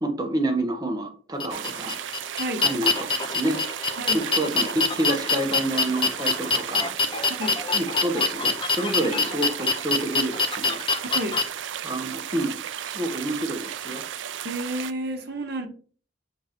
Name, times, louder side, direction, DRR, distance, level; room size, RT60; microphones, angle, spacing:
voice 1, 0.0-1.9 2.6-3.6 4.1-6.9 7.7-10.8 11.8-12.6 12.9-14.0, right 1 dB, 20° right, 1.0 m, -28 dB
sound 1, 1.4-11.4, left 4 dB, 25° left, 0.6 m, -25 dB
sound 2, 1.5-14.9, right 10 dB, 80° right, 0.4 m, -34 dB
voice 2, 14.4-15.7, right 1 dB, 55° right, 1.1 m, -30 dB
6.7 x 3.8 x 4.3 m
head